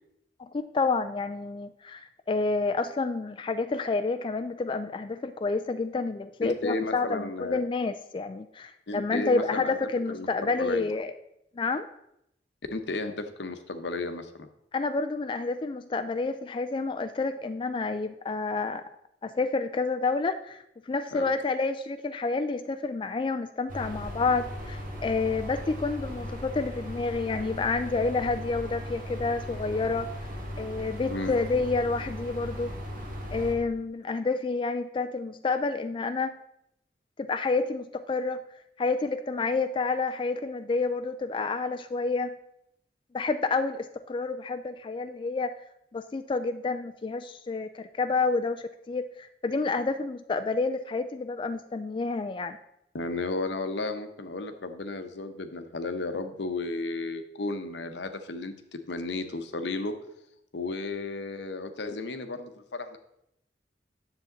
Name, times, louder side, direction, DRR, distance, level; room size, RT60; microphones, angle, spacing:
voice 1, 0.4-11.1 11.6-11.9 14.7-18.8 19.2-30.1 30.6-32.7 33.3-36.4 37.2-38.4 38.8-42.3 43.1-45.5 45.9-52.6, left 3 dB, 30° left, 9 dB, 0.3 m, -29 dB
voice 2, 6.4-7.6 8.9-9.8 10.1-10.9 12.7-14.5 21.1-21.3 31.1-31.4 52.9-59.9 60.5-63.0, left 3 dB, 85° left, 8 dB, 0.9 m, -33 dB
sound 1, 23.7-33.5, equal, 50° right, 2.1 m, -38 dB
9.8 x 7.0 x 3.8 m, 0.79 s
head